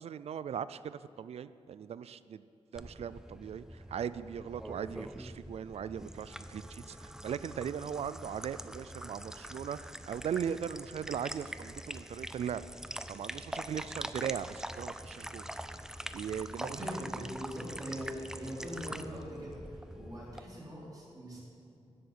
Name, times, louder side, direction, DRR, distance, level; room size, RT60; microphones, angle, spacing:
voice 1, 0.0-2.4 2.7-12.6 13.1-15.5 16.1-16.8, right 8 dB, 75° right, 15 dB, 0.4 m, -39 dB
sound 1, 2.8-20.4, right 1 dB, 5° right, 0.5 m, -44 dB
voice 2, 16.6-21.4, equal, 35° right, -6 dB, 3.6 m, -42 dB
13.0 x 7.8 x 8.1 m, 2.7 s
cardioid pair, 85°, 11 cm